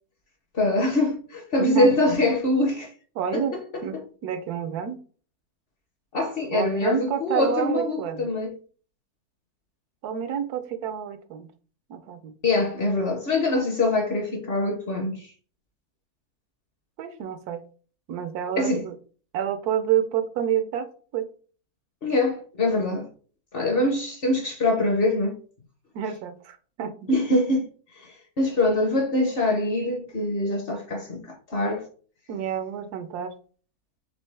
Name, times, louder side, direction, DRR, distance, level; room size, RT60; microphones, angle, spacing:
voice 1, 0.5-2.9 3.3-4.0 6.1-8.6 12.4-15.3 18.6-18.8 22.0-23.1 23.5-25.4 27.1-27.7 28.0-31.9, left 2 dB, 50° left, 0.7 m, -24 dB
voice 2, 1.6-1.9 3.2-5.0 6.5-8.3 10.0-11.5 11.9-12.3 17.0-17.6 18.1-18.9 19.3-21.3 25.9-27.1 32.3-33.3, right 9 dB, 85° right, 1.2 m, -29 dB
4.4 x 3.0 x 3.2 m
omnidirectional pair, 1.6 m